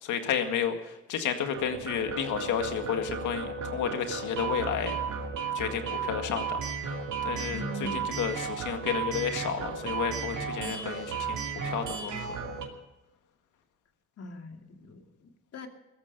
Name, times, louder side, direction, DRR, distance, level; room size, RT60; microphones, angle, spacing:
voice 1, 0.0-4.9 5.5-6.6 7.2-12.4, left 8 dB, 85° left, 7 dB, 2.0 m, -32 dB
sound 1, 1.5-12.7, right 5 dB, 75° right, 2.7 m, -34 dB
voice 2, 7.5-8.1 14.2-15.7, equal, 55° left, 4 dB, 2.5 m, -41 dB
17.5 x 14.0 x 5.3 m, 1.0 s
cardioid pair, 90°, 30 cm